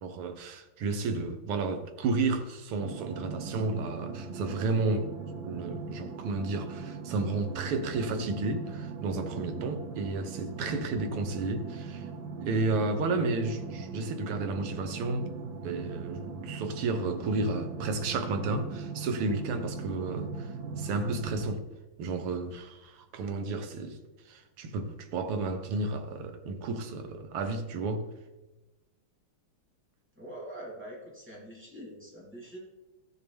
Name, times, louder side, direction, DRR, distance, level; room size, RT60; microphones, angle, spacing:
voice 1, 0.0-5.1 5.4-12.1 12.4-15.3 15.6-21.6 22.0-24.0 24.3-28.1, right 3 dB, 90° right, 1.9 m, -32 dB
sound 1, 2.8-21.5, right 4 dB, 65° right, 1.6 m, -40 dB
voice 2, 30.2-32.6, right 1 dB, 5° right, 2.9 m, -44 dB
15.0 x 6.5 x 3.5 m
omnidirectional pair, 2.4 m